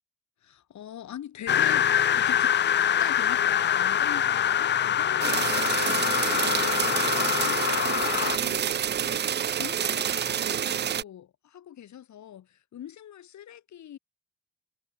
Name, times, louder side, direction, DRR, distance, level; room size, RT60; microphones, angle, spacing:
voice 1, 0.4-2.6 3.0-14.0, left 10 dB, 65° left, 5.5 m, -43 dB
sound 1, 1.5-8.4, left 10 dB, 35° left, 0.5 m, -24 dB
sound 2, 5.2-11.0, right 9 dB, 35° right, 0.5 m, -28 dB
cardioid pair, 90°, 30 cm